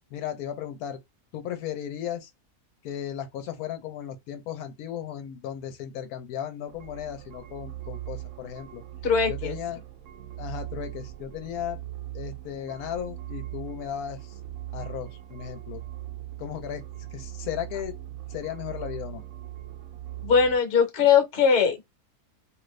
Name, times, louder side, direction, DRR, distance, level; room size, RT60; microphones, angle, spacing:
voice 1, 0.1-1.0 1.3-2.3 2.8-8.8 9.3-9.8 10.4-11.8 12.1-14.4 14.7-15.8 16.4-17.9 18.3-19.2, left 10 dB, 90° left, 1.1 m, -35 dB
sound 1, 6.7-20.6, right 14 dB, 70° right, 0.9 m, -40 dB
voice 2, 9.0-9.6 20.2-21.9, left 6 dB, 55° left, 1.1 m, -21 dB
2.8 x 2.4 x 3.1 m
omnidirectional pair, 1.5 m